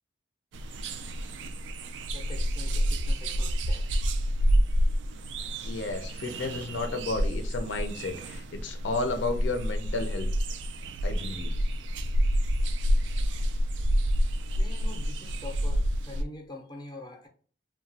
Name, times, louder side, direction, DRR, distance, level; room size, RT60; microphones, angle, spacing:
sound 1, 0.5-16.2, equal, 75° right, 0.3 m, -28 dB
voice 1, 2.1-3.9 14.5-17.3, left 2 dB, 20° left, 0.5 m, -45 dB
voice 2, 5.6-10.3 11.0-11.5, left 3 dB, 75° left, 0.4 m, -32 dB
2.8 x 2.2 x 2.6 m
head